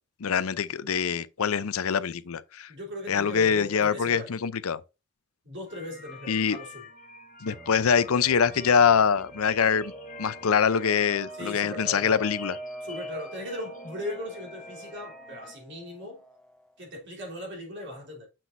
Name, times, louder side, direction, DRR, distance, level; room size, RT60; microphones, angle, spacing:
voice 1, 0.2-2.7 3.1-4.8 6.3-6.6 7.4-9.9 10.2-12.6, left 6 dB, 80° left, 0.5 m, -24 dB
voice 2, 2.7-4.3 5.4-6.9 11.4-12.2 12.8-16.2 16.8-18.3, left 1 dB, 55° right, 3.3 m, -38 dB
sound 1, 5.7-15.6, left 2 dB, 40° left, 1.1 m, -47 dB
sound 2, 7.5-16.7, right 1 dB, 5° left, 0.7 m, -44 dB
7.6 x 6.0 x 2.6 m
head